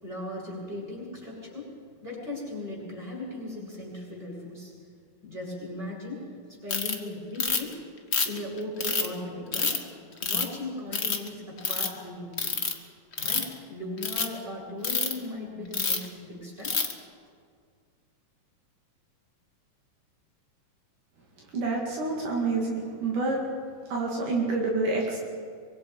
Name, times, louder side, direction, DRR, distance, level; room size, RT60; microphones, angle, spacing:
voice 1, 0.0-4.7 5.2-6.3 6.6-7.8 8.3-9.9 10.2-12.6 13.2-16.7, left 1 dB, 15° right, -5 dB, 7.1 m, -37 dB
Ratchet pawl, 6.7-6.9 7.4-7.7 8.1-9.1 9.5-9.8 10.2-10.5 10.9-11.3 11.6-11.9 12.4-12.7 13.1-13.5 14.0-14.3 14.8-15.1 15.7-16.1 16.6-16.9, left 4 dB, 55° left, 0.7 m, -27 dB
voice 2, 21.5-23.4 23.9-25.2, right 3 dB, 70° right, -2 dB, 3.9 m, -28 dB
24.5 x 23.5 x 5.5 m, 2.1 s
omnidirectional pair, 3.8 m